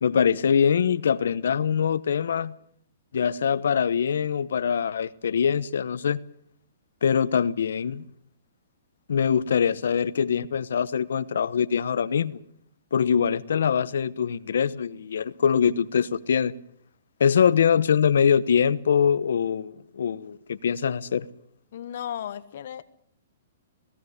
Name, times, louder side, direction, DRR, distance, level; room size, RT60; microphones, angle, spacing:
voice 1, 0.0-2.5 3.1-6.2 7.0-8.0 9.1-12.4 12.9-16.5 17.2-21.3, left 7 dB, 80° left, 1.1 m, -23 dB
voice 2, 21.7-22.8, left 10 dB, 60° left, 1.3 m, -35 dB
17.5 x 17.5 x 9.6 m
hypercardioid pair, 150°, 0 cm